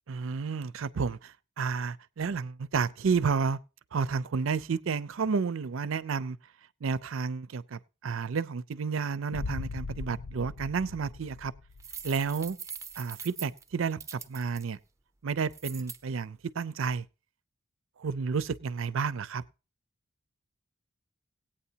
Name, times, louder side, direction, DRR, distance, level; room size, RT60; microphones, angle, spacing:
voice 1, 0.1-3.6 3.9-6.4 6.8-11.5 12.0-12.6 13.0-14.8 15.2-17.0 18.0-19.4, right 5 dB, 70° right, 0.5 m, -31 dB
Boom, 9.3-12.3, left 4 dB, 85° left, 0.5 m, -39 dB
sound 1, 11.8-14.6 15.5-16.0, right 6 dB, 15° right, 0.5 m, -42 dB
18.0 x 8.7 x 2.8 m
head